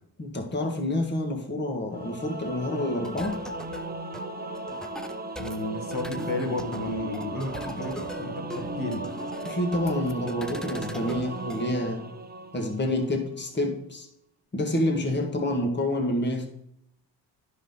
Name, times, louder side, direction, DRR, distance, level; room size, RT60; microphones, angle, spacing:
voice 1, 0.2-3.4 9.4-12.1 12.5-14.1 14.5-16.5, left 1 dB, 25° left, 2 dB, 1.7 m, -28 dB
Singing / Musical instrument, 1.9-13.2, right 2 dB, 20° right, 1.0 m, -36 dB
sound 1, 3.0-11.6, equal, ahead, 0.5 m, -42 dB
voice 2, 5.4-9.0, left 2 dB, 45° left, 2 dB, 1.7 m, -32 dB
10.0 x 5.7 x 3.9 m, 0.77 s
hypercardioid pair, 50°, 46 cm